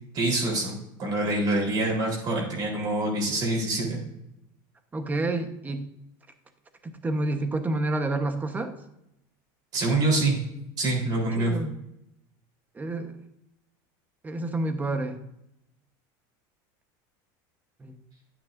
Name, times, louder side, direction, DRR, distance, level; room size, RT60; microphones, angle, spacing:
voice 1, 0.1-4.0 9.7-10.4 10.8-11.5, right 2 dB, 40° right, -1 dB, 3.7 m, -25 dB
voice 2, 4.9-5.8 7.0-8.7 11.4-11.7 12.7-13.1 14.2-15.2 17.8-17.9, right 2 dB, 15° right, 7 dB, 1.0 m, -28 dB
10.0 x 9.2 x 2.6 m, 0.82 s
supercardioid pair, 130°, 11 cm